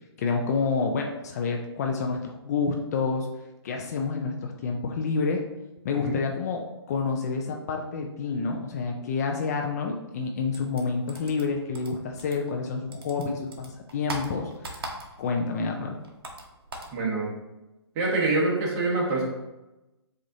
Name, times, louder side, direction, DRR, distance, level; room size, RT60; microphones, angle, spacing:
voice 1, 0.2-3.3 3.6-5.4 5.8-16.0, left 4 dB, 35° left, 2 dB, 0.5 m, -29 dB
sound 1, 10.5-12.7 12.9-15.4 15.7-17.0, right 2 dB, 55° right, 1.0 m, -39 dB
voice 2, 16.9-17.3 17.9-19.2, right 2 dB, 30° right, -3 dB, 1.4 m, -25 dB
7.4 x 2.5 x 2.7 m, 1.0 s
figure-of-eight pair, 135°, 15 cm